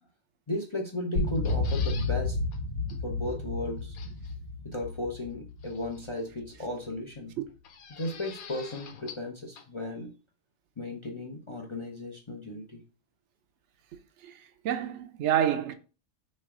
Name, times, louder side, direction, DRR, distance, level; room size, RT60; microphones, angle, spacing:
voice 1, 0.5-2.4 3.0-4.0 4.6-7.3 7.9-10.1 10.8-12.8, left 1 dB, 40° left, 0.4 m, -35 dB
sound 1, 1.2-6.5, left 3 dB, 65° left, 1.2 m, -31 dB
sound 2, 1.3-2.1 2.5-2.6 2.9-3.0 3.9-4.3 5.6-6.2 7.6-9.3 9.6-9.7, left 7 dB, 85° left, 1.2 m, -46 dB
voice 2, 14.6-15.7, right 10 dB, 65° right, 0.8 m, -28 dB
3.4 x 3.2 x 4.8 m
omnidirectional pair, 1.5 m